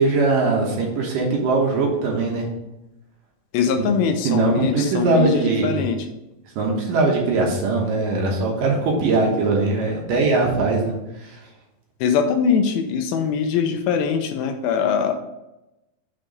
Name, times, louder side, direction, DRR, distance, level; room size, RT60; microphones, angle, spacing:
voice 1, 0.0-2.5 3.9-5.8 6.6-11.4, right 3 dB, 65° right, -1 dB, 2.5 m, -21 dB
voice 2, 3.5-6.1 12.0-15.1, left 6 dB, 80° left, 6 dB, 2.3 m, -22 dB
6.3 x 4.4 x 5.1 m, 0.94 s
omnidirectional pair, 4.4 m